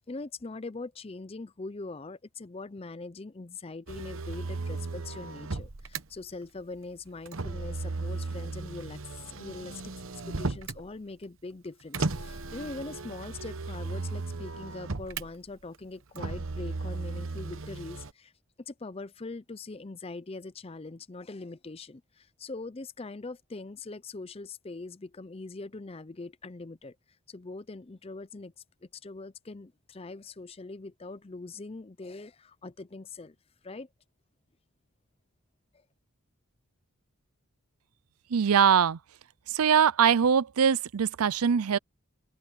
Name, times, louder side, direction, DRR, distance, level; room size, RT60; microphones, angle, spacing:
voice 1, 0.1-9.9 10.3-18.3 18.7-27.0 27.3-28.5 28.8-33.3 33.6-33.9, left 3 dB, 25° left, 0.5 m, -42 dB
Motor vehicle (road), 3.9-6.0 7.3-10.8 11.9-15.3 16.2-18.1, right 3 dB, 65° right, 1.1 m, -35 dB
voice 2, 38.3-39.0 39.5-41.8, right 7 dB, 85° right, 0.5 m, -22 dB
open air
head